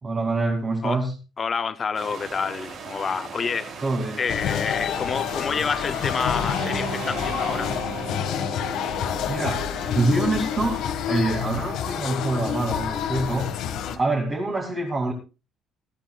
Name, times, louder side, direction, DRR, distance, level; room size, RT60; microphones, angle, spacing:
voice 1, 0.0-1.1 3.8-4.2 9.3-10.8 11.1-13.5 14.0-15.1, right 2 dB, 20° right, 2.7 m, -25 dB
voice 2, 1.4-3.8 4.2-7.7, left 5 dB, 25° left, 0.6 m, -28 dB
sound 1, 1.9-7.7, right 5 dB, 50° right, 3.3 m, -39 dB
sound 2, 4.3-14.0, left 9 dB, 65° left, 1.7 m, -28 dB
Guitar, 6.2-10.9, right 9 dB, 70° right, 1.2 m, -37 dB
21.0 x 13.5 x 2.4 m
cardioid pair, 160°, 0 cm